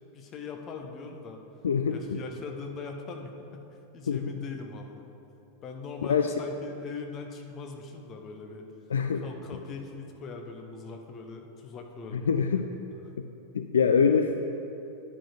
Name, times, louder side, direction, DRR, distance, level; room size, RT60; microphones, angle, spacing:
voice 1, 0.1-1.4 1.9-3.6 3.9-5.0 5.6-8.7 9.1-12.6, left 4 dB, 30° left, 4 dB, 0.8 m, -41 dB
voice 2, 1.6-2.2 4.1-4.3 6.1-6.3 8.9-9.3 12.1-12.7 13.2-13.3 13.5-14.4, left 6 dB, 65° left, 6 dB, 0.3 m, -25 dB
10.5 x 4.5 x 5.0 m, 2.8 s
figure-of-eight pair, 90°, 0 cm